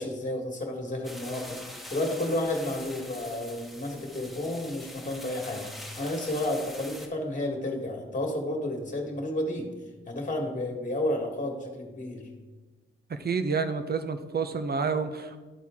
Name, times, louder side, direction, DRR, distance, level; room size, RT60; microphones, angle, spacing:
voice 1, 0.0-1.6 1.9-9.7 10.1-12.3, left 1 dB, 40° left, 1 dB, 1.7 m, -31 dB
sound 1, 1.0-7.1, left 1 dB, ahead, 1.2 m, -44 dB
voice 2, 13.1-15.4, right 5 dB, 50° right, 10 dB, 0.7 m, -29 dB
12.0 x 4.3 x 3.6 m, 1.3 s
cardioid pair, 75°, 21 cm